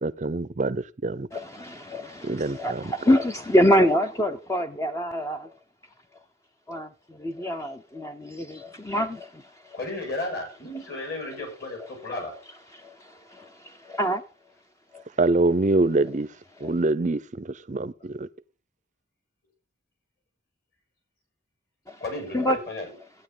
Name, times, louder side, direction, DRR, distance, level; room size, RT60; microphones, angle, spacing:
voice 1, 0.0-1.3 2.3-2.8 15.2-16.3 16.6-18.3, right 2 dB, 40° right, 0.5 m, -25 dB
voice 2, 1.3-5.5 6.7-9.8 12.8-14.2 14.9-15.0 16.6-16.7 21.9-22.0 22.3-22.6, equal, 15° left, 0.6 m, -26 dB
voice 3, 9.7-12.4 22.0-22.9, left 2 dB, 50° left, 6.3 m, -33 dB
15.0 x 9.2 x 3.8 m
head